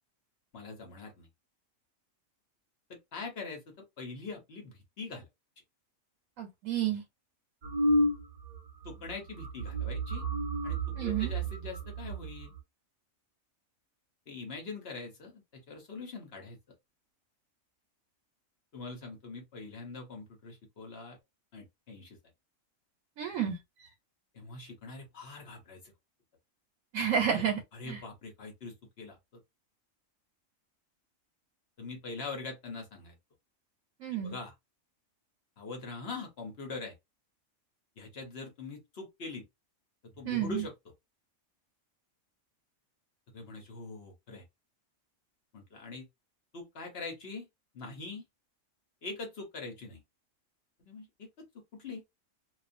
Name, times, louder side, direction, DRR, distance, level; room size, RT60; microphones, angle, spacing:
voice 1, 0.5-1.3 2.9-5.3 8.8-10.2 10.6-12.5 14.3-16.6 18.7-21.2 21.5-22.2 24.3-25.9 27.3-27.4 27.7-29.4 31.8-33.2 34.1-34.5 35.6-37.0 38.0-39.4 40.2-40.7 43.3-44.4 45.5-46.1 46.5-47.5 47.7-48.2 49.0-50.0 50.8-51.5 51.7-52.0, left 3 dB, 55° left, 1.0 m, -43 dB
voice 2, 6.4-7.0 11.0-11.3 23.2-23.9 26.9-28.0 34.0-34.4 40.2-40.7, right 8 dB, 80° right, 1.1 m, -31 dB
sound 1, 7.6-8.6 8.8-9.1 9.4-12.6, right 1 dB, 65° right, 0.4 m, -31 dB
2.4 x 2.3 x 2.5 m
omnidirectional pair, 1.4 m